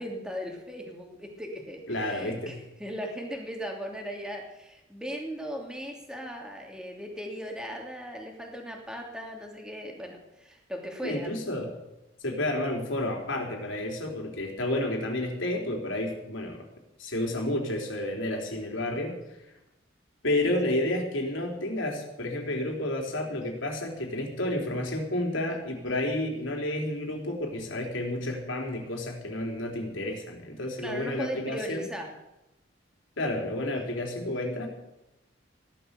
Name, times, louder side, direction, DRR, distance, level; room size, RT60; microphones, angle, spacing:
voice 1, 0.0-11.3 30.8-32.1, equal, 5° right, 1 dB, 2.8 m, -38 dB
voice 2, 1.9-2.6 11.0-11.7 12.2-16.6 17.0-19.1 20.2-31.9 33.2-34.7, left 1 dB, 80° left, 2 dB, 3.8 m, -30 dB
16.5 x 12.0 x 6.9 m, 0.95 s
head